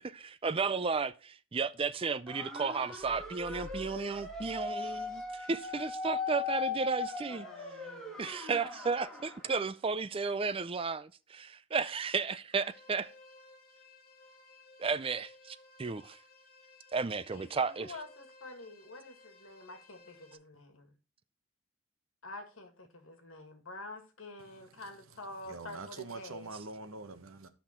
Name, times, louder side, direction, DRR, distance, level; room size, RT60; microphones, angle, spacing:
voice 1, 0.0-7.5 8.2-13.1 14.8-16.2 16.9-17.9, right 4 dB, 25° right, 0.4 m, -33 dB
sound 1, 2.3-9.5, left 4 dB, ahead, 1.8 m, -39 dB
sound 2, 3.0-6.0, left 1 dB, 25° left, 0.5 m, -52 dB
voice 2, 7.3-8.3 17.3-20.9 22.2-26.5, left 2 dB, 75° left, 1.9 m, -48 dB
sound 3, 12.5-20.3, left 3 dB, 45° left, 1.3 m, -58 dB
voice 3, 25.5-27.5, right 3 dB, 90° right, 1.1 m, -44 dB
10.5 x 5.9 x 4.3 m
head